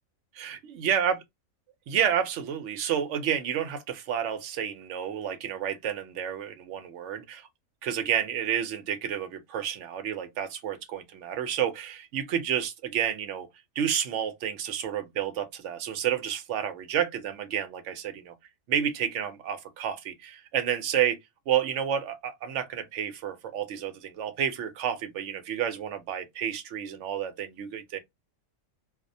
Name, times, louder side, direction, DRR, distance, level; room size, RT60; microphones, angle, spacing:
voice 1, 0.3-1.2 1.9-7.5 7.8-13.5 13.8-18.3 18.7-21.2 21.5-28.0, right 9 dB, 70° right, 0.8 m, -30 dB
2.4 x 2.1 x 2.6 m
omnidirectional pair, 1.4 m